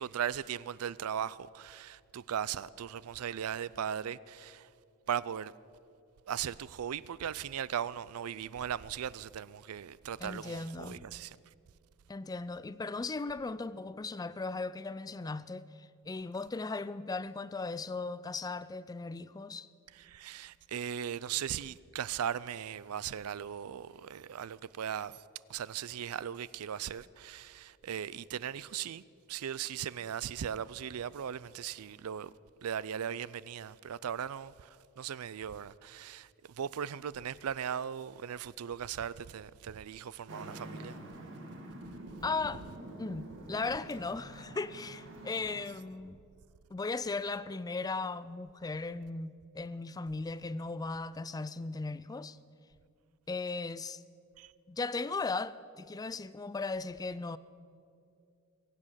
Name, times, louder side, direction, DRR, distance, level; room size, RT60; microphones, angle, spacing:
voice 1, 0.0-4.7 5.1-5.5 6.3-11.4 19.9-25.2 25.5-29.0 29.3-32.3 32.6-34.7 35.0-36.3 36.6-41.0 54.4-54.5, right 8 dB, 90° right, 0.4 m, -38 dB
voice 2, 10.2-11.1 12.1-19.7 42.2-42.6 43.0-46.2 46.7-52.4 53.3-54.0 54.7-57.4, left 3 dB, 15° left, 0.4 m, -37 dB
Traffic noise roadway noise, 40.3-45.6, right 1 dB, 60° right, 2.1 m, -47 dB
22.0 x 8.4 x 7.5 m
head